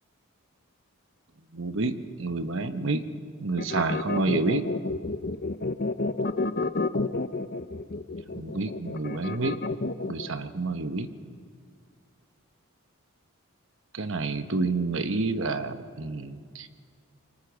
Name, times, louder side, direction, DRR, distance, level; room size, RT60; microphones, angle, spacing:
voice 1, 1.5-3.1 3.4-4.7 8.3-9.6 10.1-11.1 14.0-16.7, right 3 dB, 60° right, 10 dB, 1.1 m, -29 dB
sound 1, 3.6-10.3, left 3 dB, 45° left, 0.6 m, -30 dB
25.5 x 23.5 x 6.3 m, 2.1 s
head